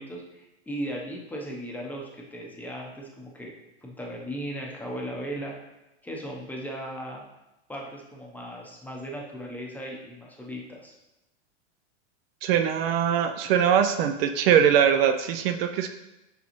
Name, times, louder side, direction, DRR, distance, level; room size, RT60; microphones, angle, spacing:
voice 1, 0.0-3.5 3.8-5.6 6.0-7.2 7.7-10.9, equal, 5° left, -1 dB, 0.7 m, -37 dB
voice 2, 12.4-15.9, right 9 dB, 55° right, 7 dB, 0.5 m, -22 dB
6.7 x 4.7 x 3.0 m, 0.96 s
supercardioid pair, 135°, 35 cm